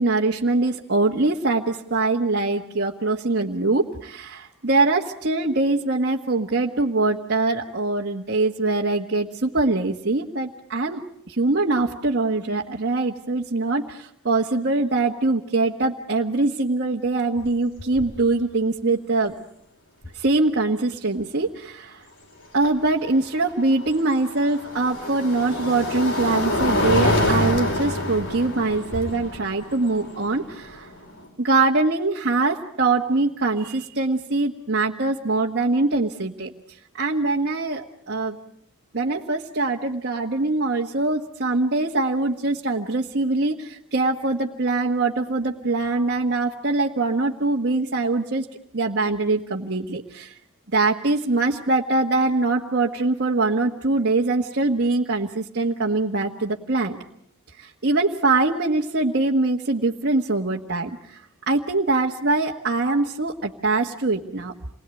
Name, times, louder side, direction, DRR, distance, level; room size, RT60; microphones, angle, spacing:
voice 1, 0.0-19.4 20.1-22.0 22.5-30.9 31.4-36.5 37.0-38.4 38.9-50.4 50.7-57.0 57.6-61.2 61.5-64.5, right 3 dB, 50° right, 0 dB, 1.5 m, -23 dB
sound 1, 17.4-17.5 17.8-18.2 20.0-20.1 23.1-31.2, left 1 dB, 55° left, 5.3 m, -26 dB
28.5 x 21.0 x 9.1 m, 0.73 s
head